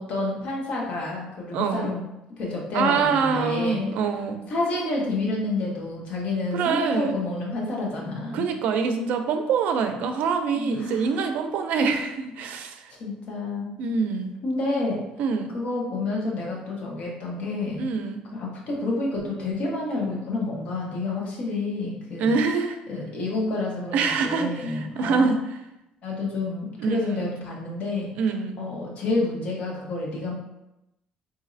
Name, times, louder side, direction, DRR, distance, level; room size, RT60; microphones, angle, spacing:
voice 1, 0.0-2.0 2.4-3.9 4.5-8.5 10.6-11.3 13.0-13.7 14.4-15.0 15.5-17.9 18.3-22.3 22.9-25.3 26.0-28.1 28.6-30.3, left 2 dB, 55° left, -2 dB, 1.0 m, -29 dB
voice 2, 1.5-1.9 2.7-4.4 6.5-7.2 8.3-12.9 13.8-14.3 15.2-15.5 17.8-18.2 22.2-22.8 23.9-25.6 26.8-27.3 28.2-28.6, right 5 dB, 65° right, 6 dB, 0.4 m, -25 dB
4.0 x 2.7 x 2.6 m, 0.90 s
cardioid pair, 135°, 3 cm